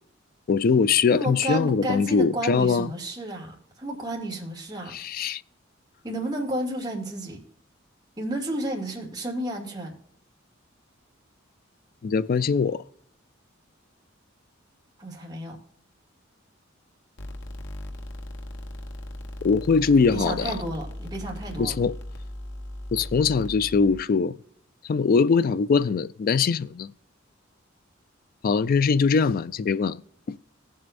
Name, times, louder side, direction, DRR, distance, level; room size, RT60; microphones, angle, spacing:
voice 1, 0.5-2.9 4.9-5.4 12.0-12.8 19.4-20.5 21.6-21.9 22.9-24.3 24.8-26.9 28.4-30.0 30.3-30.4, left 5 dB, 45° left, 0.3 m, -22 dB
voice 2, 1.1-4.9 6.0-7.4 8.2-9.9 15.0-15.6 20.1-21.8, right 1 dB, 20° right, 2.4 m, -31 dB
sound 1, 17.2-24.0, left 1 dB, 65° left, 1.1 m, -38 dB
17.5 x 7.7 x 2.6 m
head